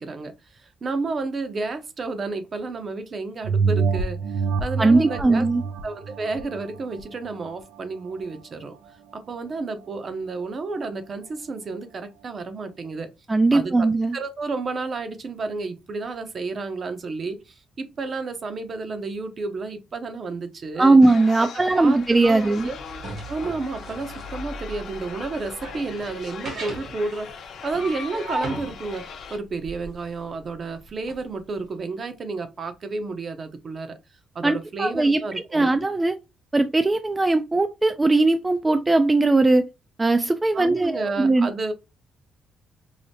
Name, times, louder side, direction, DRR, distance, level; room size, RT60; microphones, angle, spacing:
voice 1, 0.0-5.5 5.8-8.7 9.1-13.1 13.5-13.9 14.1-21.0 21.4-21.5 21.7-22.8 23.3-34.0 34.3-35.7 40.5-41.7, right 3 dB, 45° right, 0.7 m, -31 dB
sound 1, 3.4-8.4 8.9-9.0, right 5 dB, 85° right, 0.4 m, -27 dB
voice 2, 4.8-5.6 13.3-14.2 20.8-22.7 34.4-35.2 35.5-36.2 36.5-39.6 40.0-41.5, right 2 dB, 20° right, 0.3 m, -19 dB
sound 2, 21.0-29.4, left 6 dB, 70° left, 0.8 m, -40 dB
sound 3, 21.6-31.2, right 1 dB, 60° right, 1.1 m, -37 dB
4.8 x 2.1 x 2.7 m
cardioid pair, 90°, 0 cm